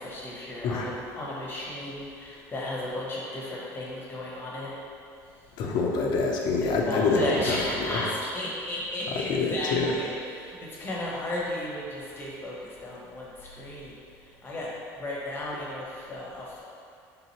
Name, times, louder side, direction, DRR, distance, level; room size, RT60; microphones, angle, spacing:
voice 1, 0.0-4.7 6.8-13.9 14.2-14.7 15.0-16.6, left 1 dB, 25° left, -5 dB, 1.1 m, -34 dB
voice 2, 5.6-8.0 9.3-9.9, left 3 dB, 65° left, 0 dB, 0.7 m, -26 dB
3.6 x 2.9 x 4.2 m, 2.4 s
supercardioid pair, 100°, 8 cm